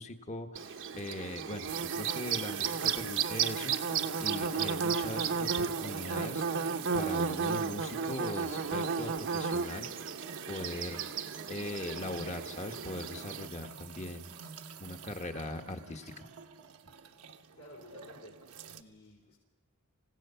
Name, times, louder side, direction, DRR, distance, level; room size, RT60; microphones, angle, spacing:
voice 1, 0.0-1.7 1.9-3.7 4.2-6.4 6.9-9.9 10.5-11.0 11.5-14.3 14.8-16.1, left 2 dB, 30° left, 6 dB, 1.4 m, -40 dB
Bird / Buzz, 0.6-13.5, right 6 dB, 60° right, 0.9 m, -34 dB
sound 1, 1.7-18.8, right 8 dB, 80° right, 1.1 m, -45 dB
voice 2, 17.5-18.4 18.7-19.4, equal, 65° left, -2 dB, 4.0 m, -54 dB
27.5 x 17.0 x 5.7 m, 1.3 s
head